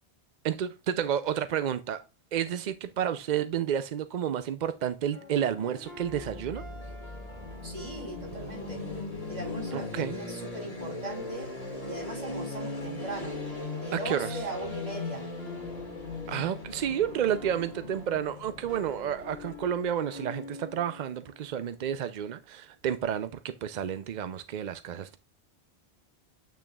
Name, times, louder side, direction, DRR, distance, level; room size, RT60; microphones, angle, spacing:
voice 1, 0.4-2.0 2.3-6.6 9.7-10.2 13.9-14.4 16.3-25.2, right 9 dB, 55° right, 0.5 m, -31 dB
sound 1, 5.1-22.0, left 2 dB, 70° left, 2.3 m, -45 dB
sound 2, 5.9-19.8, left 3 dB, 35° left, 2.0 m, -39 dB
voice 2, 7.6-8.8 9.3-11.5 11.9-13.4 13.7-15.3, right 2 dB, 40° right, 3.3 m, -39 dB
8.5 x 6.1 x 2.3 m
omnidirectional pair, 1.1 m